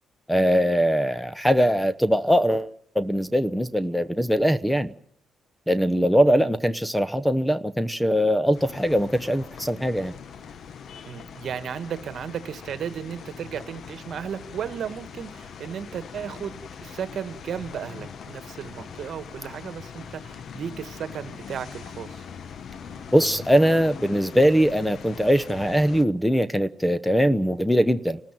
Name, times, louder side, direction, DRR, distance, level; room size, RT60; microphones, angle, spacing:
voice 1, 0.3-4.9 5.7-10.1 23.1-28.2, equal, ahead, 0.9 m, -21 dB
sound 1, 8.5-26.0, left 6 dB, 60° left, 1.1 m, -41 dB
voice 2, 11.0-22.3, right 8 dB, 60° right, 1.5 m, -35 dB
29.5 x 13.5 x 9.1 m
cardioid pair, 90°, 0 cm